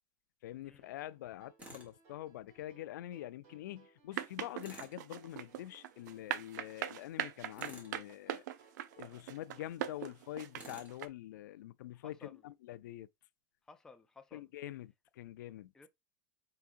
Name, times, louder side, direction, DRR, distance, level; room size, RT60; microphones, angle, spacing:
voice 1, 0.4-8.5 9.0-13.1 14.3-15.7, left 14 dB, 90° left, 0.4 m, -45 dB
sound 1, 0.8-10.6, right 5 dB, 60° right, 2.4 m, -67 dB
Tools, 1.6-1.9 4.6-5.0 7.5-8.0 10.5-11.0, right 2 dB, 15° right, 1.3 m, -51 dB
sound 2, 4.1-11.1, right 12 dB, 75° right, 0.5 m, -40 dB
voice 2, 11.9-12.4 13.7-14.5 15.7-15.9, left 4 dB, 5° left, 0.4 m, -57 dB
4.7 x 3.5 x 2.5 m
supercardioid pair, 155°, 10 cm